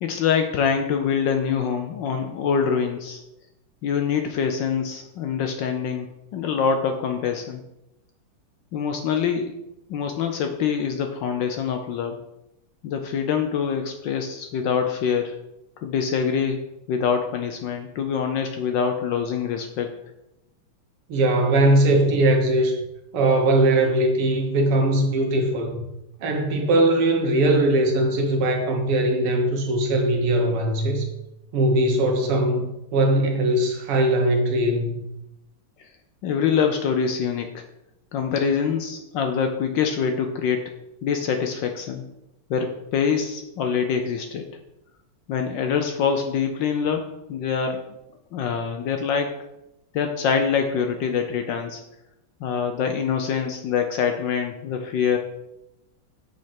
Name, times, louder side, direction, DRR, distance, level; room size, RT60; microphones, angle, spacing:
voice 1, 0.0-3.2 3.8-7.6 8.7-9.6 9.9-12.2 12.8-15.4 15.8-19.9 36.2-37.6 38.1-40.6 41.0-42.0 42.5-44.5 45.3-47.8 48.3-49.4 49.9-51.8 52.4-55.2, left 6 dB, 70° left, 5 dB, 1.1 m, -25 dB
voice 2, 21.1-22.8 23.1-25.9 26.2-31.1 31.5-32.6 32.9-35.0, right 1 dB, 85° right, 3 dB, 2.1 m, -20 dB
6.3 x 4.3 x 5.7 m, 0.87 s
omnidirectional pair, 2.4 m